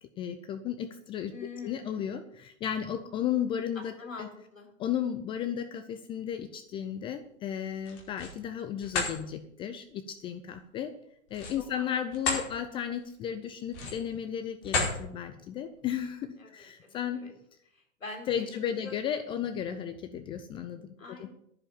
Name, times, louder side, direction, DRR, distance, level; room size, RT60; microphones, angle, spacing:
voice 1, 0.0-3.9 4.2-4.3 4.8-10.9 11.3-17.2 18.3-21.3, left 9 dB, 15° left, 9 dB, 0.4 m, -34 dB
voice 2, 1.3-2.0 4.0-4.7 11.7-11.9 16.4-17.3 17.7-18.9 21.0-21.3, left 4 dB, 90° left, 3 dB, 3.9 m, -45 dB
sound 1, 7.8-8.4 8.8-9.1 11.3-12.5 12.9-13.1 13.7-14.1 14.6-15.0, left 3 dB, 45° left, 4.9 m, -31 dB
10.5 x 7.1 x 8.6 m, 0.73 s
hypercardioid pair, 120°, 39 cm